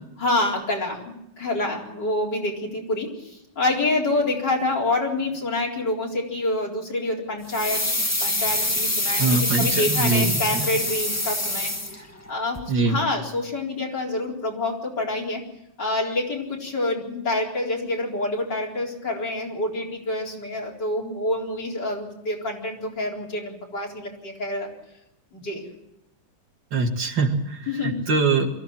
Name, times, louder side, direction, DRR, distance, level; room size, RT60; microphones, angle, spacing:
voice 1, 0.2-7.9 8.2-15.4 15.8-24.7 25.3-25.6 27.7-28.0, left 2 dB, 60° left, -2 dB, 4.9 m, -27 dB
sound 1, 7.5-12.3 12.5-12.6, left 1 dB, 10° left, 1.4 m, -25 dB
voice 2, 9.2-10.7 12.7-13.0 26.7-28.5, right 3 dB, 65° right, 4 dB, 2.7 m, -23 dB
23.0 x 15.5 x 8.8 m, 0.83 s
omnidirectional pair, 2.1 m